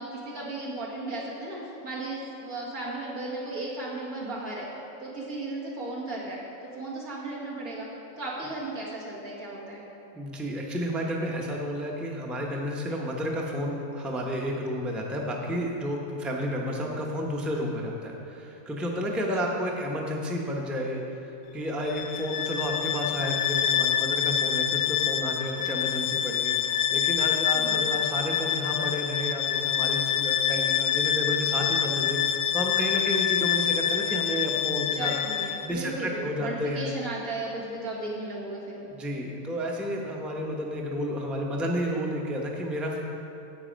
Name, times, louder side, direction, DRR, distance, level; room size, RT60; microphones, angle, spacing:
voice 1, 0.0-4.7 5.0-6.4 6.6-7.9 8.2-9.8 27.5-27.8 34.9-38.7, right 2 dB, 80° right, -5 dB, 2.4 m, -35 dB
voice 2, 10.1-35.2 35.6-36.9 38.8-43.0, equal, ahead, -1 dB, 0.7 m, -31 dB
Bowed string instrument, 21.8-35.7, left 10 dB, 65° left, 1.0 m, -26 dB
9.6 x 8.1 x 5.1 m, 2.9 s
omnidirectional pair, 1.5 m